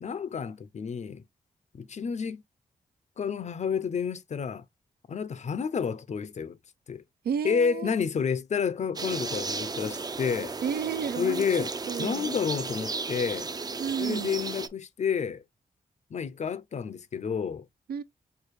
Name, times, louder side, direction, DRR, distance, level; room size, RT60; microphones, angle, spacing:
voice 1, 0.0-1.2 1.7-2.4 3.2-4.6 5.1-6.6 6.9-7.0 7.4-10.6 11.2-13.5 14.0-15.4 16.1-17.7, left 6 dB, 50° left, 0.5 m, -30 dB
voice 2, 7.2-7.9 10.6-11.5 11.9-12.3 13.8-14.3 17.9-18.0, right 7 dB, 90° right, 0.5 m, -31 dB
sound 1, 9.0-14.7, right 4 dB, 25° right, 0.4 m, -34 dB
4.7 x 2.3 x 3.1 m
wide cardioid pair, 100°, 15 cm